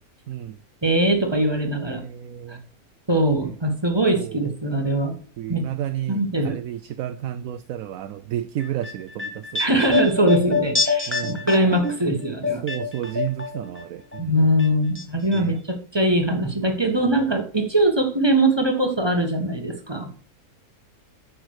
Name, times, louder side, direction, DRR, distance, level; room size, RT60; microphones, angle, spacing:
voice 1, 0.3-0.6 1.9-2.7 4.2-4.5 5.4-9.8 11.1-11.8 12.6-14.4 15.3-15.6 17.0-17.3, right 11 dB, 70° right, 1.0 m, -32 dB
voice 2, 0.8-2.0 2.5-2.6 3.1-5.2 5.5-5.7 6.1-6.5 9.6-12.6 14.2-20.1, right 1 dB, 20° right, 1.3 m, -21 dB
sound 1, 8.6-13.8 14.1-15.0 15.3-15.4, left 4 dB, 15° left, 0.4 m, -26 dB
9.0 x 6.3 x 4.7 m
omnidirectional pair, 1.6 m